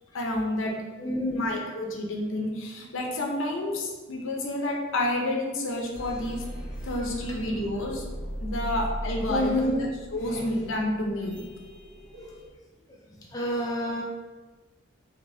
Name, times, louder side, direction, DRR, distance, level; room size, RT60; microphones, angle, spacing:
voice 1, 0.1-0.8 1.3-6.4 6.8-8.0 8.4-9.7 10.1-11.4, left 1 dB, 75° left, 0 dB, 0.6 m, -29 dB
voice 2, 1.0-1.6 9.3-9.9 13.3-14.0, equal, 15° left, -4 dB, 0.4 m, -28 dB
sound 1, 5.9-12.5, equal, 75° right, 1.1 m, -38 dB
2.8 x 2.7 x 3.3 m, 1.3 s
head